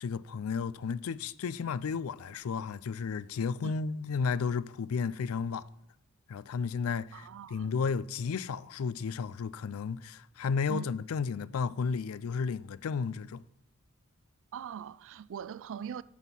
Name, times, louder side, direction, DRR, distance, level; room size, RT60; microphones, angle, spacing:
voice 1, 0.0-5.7 6.3-13.4, left 5 dB, 70° left, 0.4 m, -33 dB
voice 2, 7.1-7.7 10.7-10.9 14.5-16.0, right 8 dB, 65° right, 0.4 m, -41 dB
9.8 x 6.4 x 5.4 m
head